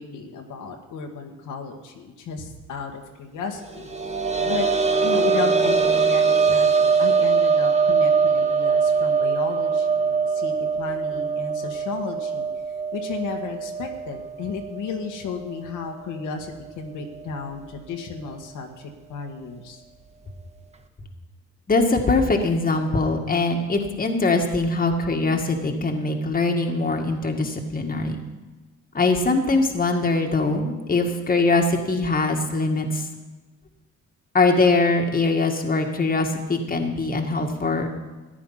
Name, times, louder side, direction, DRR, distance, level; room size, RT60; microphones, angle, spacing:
voice 1, 0.0-3.9 4.4-4.7 5.0-12.5 12.9-19.8, left 5 dB, 80° left, 2 dB, 1.8 m, -33 dB
sound 1, 3.7-15.2 15.5-15.6 17.1-17.2, right 5 dB, 20° right, 1.4 m, -22 dB
voice 2, 21.7-28.2 28.9-33.1 34.3-37.9, left 3 dB, 30° left, 2 dB, 1.9 m, -22 dB
14.5 x 10.0 x 5.6 m, 1.2 s
cardioid pair, 90°, 30 cm